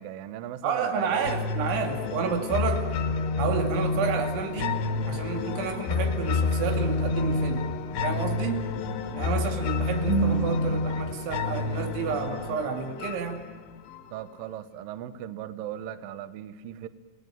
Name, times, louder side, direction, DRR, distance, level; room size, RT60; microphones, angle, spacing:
voice 1, 0.0-1.3 14.1-16.9, right 11 dB, 75° right, 13 dB, 2.2 m, -38 dB
voice 2, 0.6-2.9 3.4-4.8 5.1-7.7 8.0-8.6 9.1-13.4, right 6 dB, 90° right, 5 dB, 4.7 m, -29 dB
sound 1, 1.2-14.2, left 4 dB, 85° left, 3.6 m, -29 dB
29.5 x 18.5 x 9.0 m, 1.3 s
omnidirectional pair, 5.2 m